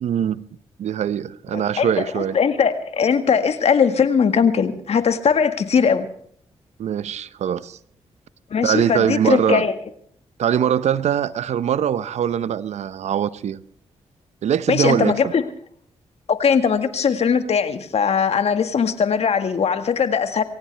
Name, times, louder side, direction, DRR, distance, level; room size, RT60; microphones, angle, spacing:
voice 1, 0.0-0.4 0.8-2.4 6.8-7.8 8.6-9.6 10.4-13.6 14.4-15.3, right 9 dB, 70° right, 0.8 m, -22 dB
voice 2, 1.5-1.9 2.2-6.1 8.5-9.7 14.7-15.4 16.3-20.4, left 6 dB, 65° left, 1.8 m, -20 dB
23.0 x 18.0 x 3.4 m
supercardioid pair, 50°, 12 cm